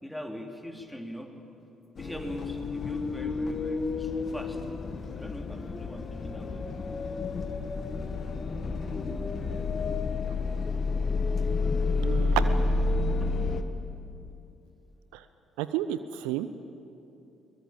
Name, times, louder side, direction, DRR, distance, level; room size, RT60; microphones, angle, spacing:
voice 1, 0.0-1.3 1.9-4.6 5.1-6.6 13.2-13.3 16.4-16.7, equal, 5° left, 2 dB, 3.2 m, -41 dB
sound 1, 2.0-13.6, left 3 dB, 40° left, 1.5 m, -30 dB
voice 2, 12.0-12.8 15.1-15.2 15.6-16.5, right 12 dB, 65° right, 13 dB, 0.6 m, -31 dB
22.5 x 21.0 x 8.8 m, 2.7 s
figure-of-eight pair, 45°, 0 cm